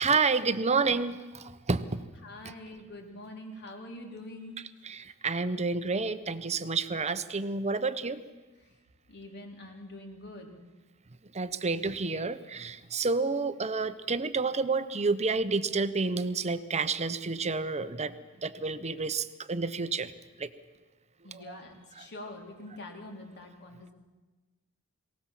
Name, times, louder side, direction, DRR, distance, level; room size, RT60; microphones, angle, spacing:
voice 1, 0.0-2.0 4.8-8.2 11.3-18.1 18.4-20.1 20.4-20.5 21.3-21.6 22.0-22.1, right 4 dB, 30° right, 12 dB, 0.9 m, -29 dB
voice 2, 2.2-4.6 8.6-8.7 9.1-10.6 21.2-23.9, left 1 dB, 50° left, 1 dB, 3.6 m, -45 dB
23.0 x 18.0 x 7.5 m, 1.2 s
head